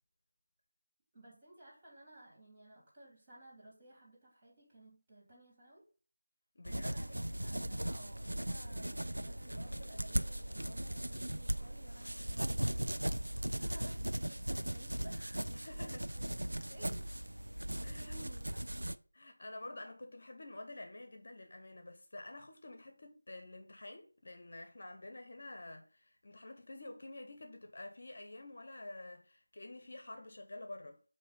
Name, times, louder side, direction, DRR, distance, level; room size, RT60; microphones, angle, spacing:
voice 1, 1.1-5.9 6.6-15.5 15.8-16.1 16.5-17.0 17.8-18.5, right 1 dB, 20° right, 3.1 m, -57 dB
voice 2, 6.5-7.0 15.5-16.1 17.8-18.1 19.1-31.0, left 2 dB, 50° left, 0.9 m, -49 dB
sound 1, 6.6-18.9, right 1 dB, 80° right, 0.5 m, -38 dB
7.8 x 2.9 x 5.3 m
figure-of-eight pair, 165°, 0 cm